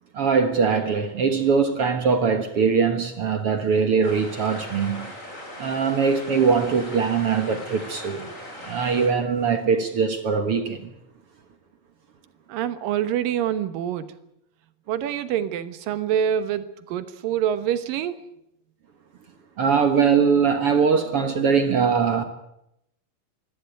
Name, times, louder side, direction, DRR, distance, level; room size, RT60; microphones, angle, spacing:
voice 1, 0.1-5.1 5.6-8.3 8.6-10.9 19.6-22.2, right 6 dB, 50° right, 1.9 m, -21 dB
sound 1, 4.0-9.1, left 1 dB, 20° left, 5.6 m, -39 dB
voice 2, 12.5-14.1 14.9-18.2, right 9 dB, 75° right, 2.9 m, -26 dB
24.0 x 15.5 x 9.1 m
omnidirectional pair, 4.0 m